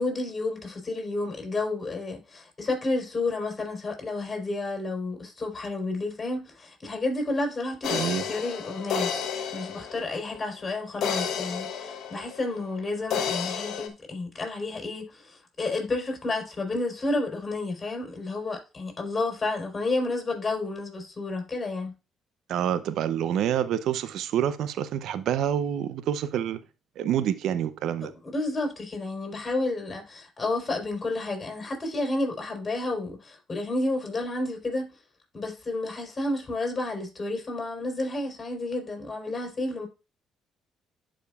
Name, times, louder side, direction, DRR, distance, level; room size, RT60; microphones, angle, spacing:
voice 1, 0.0-9.1 9.5-21.9 28.0-34.9 35.3-39.9, left 2 dB, 30° left, 3.9 m, -31 dB
sound 1, 7.8-10.4 11.0-12.7 13.1-13.9, left 7 dB, 65° left, 0.9 m, -31 dB
voice 2, 7.9-8.3 22.5-26.6 27.0-28.1, right 10 dB, 70° right, 0.6 m, -27 dB
11.5 x 5.1 x 2.4 m
hypercardioid pair, 55°, 0 cm